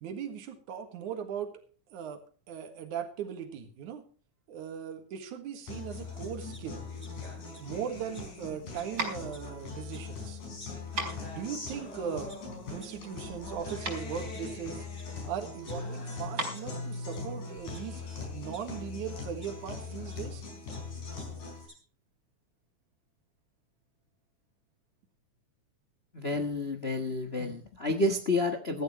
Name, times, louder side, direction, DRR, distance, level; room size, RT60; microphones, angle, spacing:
voice 1, 0.0-1.5 1.9-2.2 2.5-4.0 4.5-6.8 7.6-10.4 11.3-12.3 12.7-14.8 15.3-18.0 18.3-20.4, right 8 dB, 75° right, 5 dB, 3.1 m, -38 dB
Guitar, 5.7-21.7, left 3 dB, 85° left, 6.3 m, -40 dB
sound 1, 6.5-7.1 7.5-7.6 8.1-8.2 8.8-8.9 9.2-9.5 9.9-10.0 10.6-10.7 11.1-11.2 11.7-11.8 12.3-12.4 12.8-12.9 13.5-14.4 15.0-15.1 15.4-16.1 16.5-16.6 17.1-17.2 17.7-18.6 19.4-19.5 20.1-20.2 20.5-20.8 21.2-21.3 21.5-21.8, right 1 dB, 10° right, 6.1 m, -54 dB
sound 2, 8.1-17.9, right 2 dB, 30° right, 4.5 m, -40 dB
voice 2, 26.1-28.8, left 2 dB, 70° left, 6 dB, 0.5 m, -30 dB
16.0 x 14.5 x 3.1 m, 0.39 s
omnidirectional pair, 3.6 m